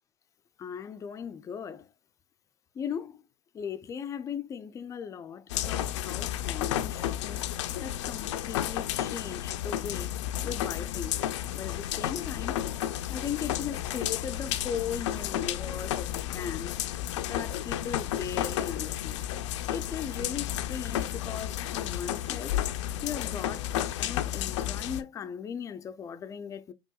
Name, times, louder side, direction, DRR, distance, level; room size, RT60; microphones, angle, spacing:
voice 1, 0.6-1.9 2.7-3.2 3.5-7.5 7.8-10.1 10.4-11.3 11.5-12.6 13.1-16.8 17.3-19.3 19.7-22.6 23.0-26.7, left 7 dB, 20° left, 0.4 m, -38 dB
sound 1, 5.5-25.0, left 12 dB, 80° left, 0.5 m, -32 dB
5.5 x 3.0 x 2.3 m
supercardioid pair, 125°, 15 cm